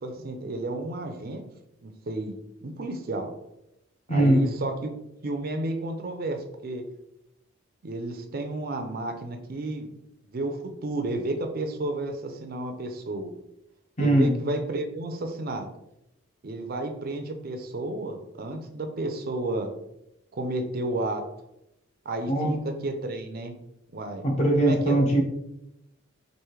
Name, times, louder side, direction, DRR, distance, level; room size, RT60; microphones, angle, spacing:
voice 1, 0.0-1.4 1.8-3.3 4.1-5.0 5.2-6.8 7.8-9.9 10.3-13.3 14.0-15.7 16.4-19.7 20.3-21.2 22.1-23.5 23.9-24.2 24.6-25.0, right 2 dB, 45° right, 6 dB, 0.5 m, -32 dB
voice 2, 4.1-4.4 14.0-14.3 22.3-22.5 24.2-25.2, right 1 dB, 35° left, 0 dB, 1.0 m, -21 dB
4.8 x 2.6 x 3.1 m, 0.83 s
head